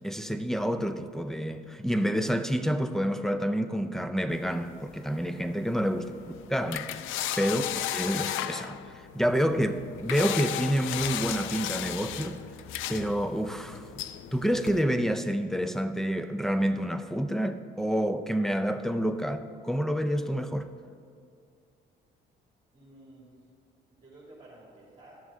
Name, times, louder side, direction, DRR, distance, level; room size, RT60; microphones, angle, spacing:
voice 1, 0.0-6.1 6.5-6.9 7.4-7.6 7.9-12.4 12.9-13.9 14.3-20.7, equal, ahead, 0.5 m, -28 dB
sound 1, 4.3-14.8, left 12 dB, 85° left, 0.4 m, -36 dB
voice 2, 5.9-6.2 22.7-23.3 23.9-25.2, right 2 dB, 25° right, 2.5 m, -53 dB
sound 2, 9.2-14.9, left 1 dB, 40° left, 2.2 m, -53 dB
12.0 x 7.2 x 3.7 m
cardioid pair, 90°, 20 cm